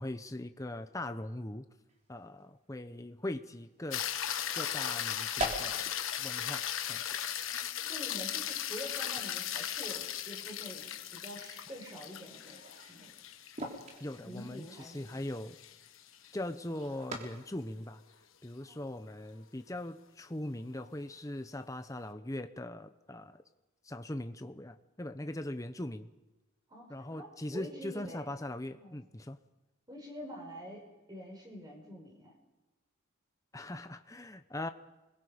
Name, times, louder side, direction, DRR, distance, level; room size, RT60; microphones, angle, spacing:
voice 1, 0.0-1.7 2.1-4.2 4.5-5.9 6.2-7.0 14.0-15.6 16.3-18.0 18.4-23.4 23.8-26.1 26.9-29.4 33.5-34.7, left 1 dB, 15° left, 9 dB, 0.8 m, -40 dB
sound 1, 1.9-2.1 2.4-2.5 3.5-3.6 3.9-4.3 5.0-18.3, right 1 dB, 35° right, 3.7 m, -46 dB
sound 2, 3.9-16.3 20.8-20.9, left 10 dB, 80° left, 1.3 m, -37 dB
voice 2, 7.9-13.1 14.2-15.2 18.6-18.8 26.7-28.3 28.8-29.0 29.9-32.3, equal, 20° right, 0 dB, 5.7 m, -47 dB
28.0 x 22.0 x 5.2 m, 1.1 s
head